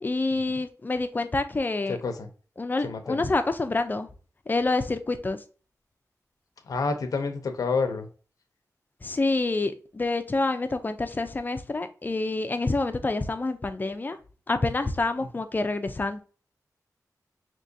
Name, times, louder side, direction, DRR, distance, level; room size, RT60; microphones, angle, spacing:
voice 1, 0.0-2.0 2.6-4.1 4.5-5.4 9.0-14.2 14.5-16.2, left 3 dB, 30° left, 0.5 m, -27 dB
voice 2, 1.9-2.3 2.8-3.2 6.7-8.1, left 4 dB, 75° left, 0.7 m, -28 dB
4.7 x 2.9 x 2.6 m
wide cardioid pair, 115°, 6 cm